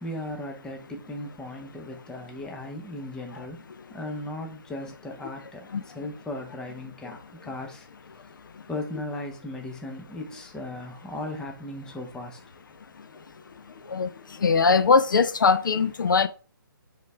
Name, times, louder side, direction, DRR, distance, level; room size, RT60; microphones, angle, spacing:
voice 1, 0.0-3.6 3.9-7.2 7.5-7.9 8.7-12.4, left 1 dB, 5° left, 0.7 m, -37 dB
voice 2, 14.4-16.3, left 5 dB, 65° left, 0.5 m, -20 dB
8.0 x 3.6 x 3.3 m
figure-of-eight pair, 150°, 12 cm